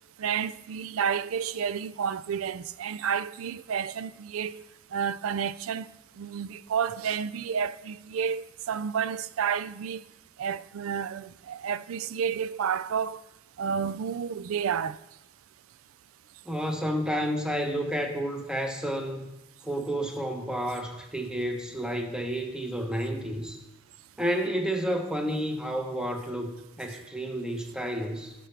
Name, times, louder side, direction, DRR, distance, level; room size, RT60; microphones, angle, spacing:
voice 1, 0.2-4.6 4.9-10.0 10.4-13.2 13.6-15.0, right 7 dB, 85° right, 0.4 m, -30 dB
voice 2, 16.4-19.2 19.6-23.6 24.2-28.3, equal, 5° right, 0.9 m, -30 dB
16.5 x 6.1 x 3.3 m
head